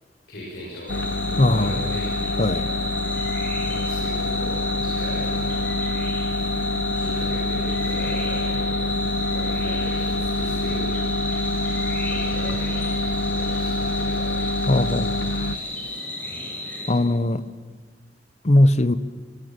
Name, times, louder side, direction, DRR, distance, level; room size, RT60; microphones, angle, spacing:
voice 1, 0.3-1.0 1.3-2.1 3.6-5.6 6.6-6.7 6.9-8.8 9.3-10.9 12.0-12.9 13.2-14.4 16.2-16.5, equal, 75° left, -4 dB, 6.4 m, -38 dB
sound 1, 0.9-15.6, left 2 dB, 90° left, 0.8 m, -26 dB
sound 2, 0.9-16.9, left 2 dB, 10° left, 6.1 m, -32 dB
voice 2, 1.4-1.8 2.4-2.7 14.7-15.1 16.9-17.4 18.4-19.0, left 1 dB, 40° left, 13 dB, 1.0 m, -19 dB
25.0 x 22.0 x 9.0 m, 1.6 s
head